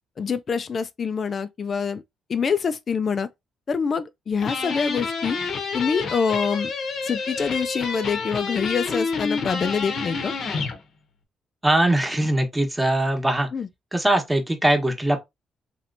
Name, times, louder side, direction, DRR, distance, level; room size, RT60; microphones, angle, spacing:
voice 1, 0.2-2.0 2.3-3.3 3.7-5.4 5.7-6.7 7.0-10.3 13.5-13.7, left 6 dB, 45° left, 0.3 m, -25 dB
sound 1, 4.4-10.8, left 4 dB, 65° left, 0.8 m, -28 dB
voice 2, 11.6-13.5 13.9-15.2, right 1 dB, 10° right, 1.0 m, -21 dB
3.1 x 2.9 x 2.5 m
cardioid pair, 90°, 0 cm